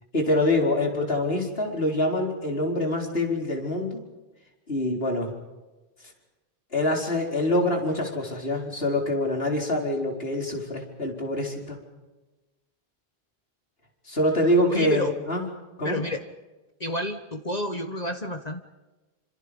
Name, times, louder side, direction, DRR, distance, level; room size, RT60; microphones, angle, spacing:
voice 1, 0.1-4.0 4.7-5.3 6.7-11.8 14.1-15.4 15.8-16.0, left 1 dB, 75° left, 2 dB, 4.9 m, -25 dB
voice 2, 14.7-15.1 15.8-16.2 16.8-18.6, left 1 dB, 40° left, 6 dB, 1.4 m, -30 dB
29.0 x 26.5 x 5.4 m, 1.1 s
omnidirectional pair, 1.0 m